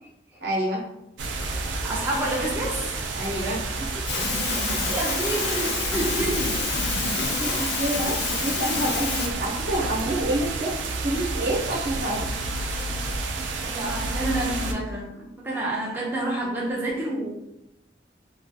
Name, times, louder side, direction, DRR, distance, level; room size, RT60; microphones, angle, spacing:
voice 1, 0.4-0.8 3.1-4.0 7.4-10.7 11.0-12.3, right 1 dB, 65° right, -2 dB, 0.7 m, -28 dB
sound 1, 1.2-14.7, right 3 dB, 90° right, 0.4 m, -30 dB
voice 2, 1.8-3.0 4.7-6.6 13.6-17.4, right 1 dB, 10° right, -5 dB, 0.4 m, -29 dB
sound 2, 4.1-9.3, left 4 dB, 70° left, 0.5 m, -28 dB
2.3 x 2.3 x 2.6 m, 0.83 s
head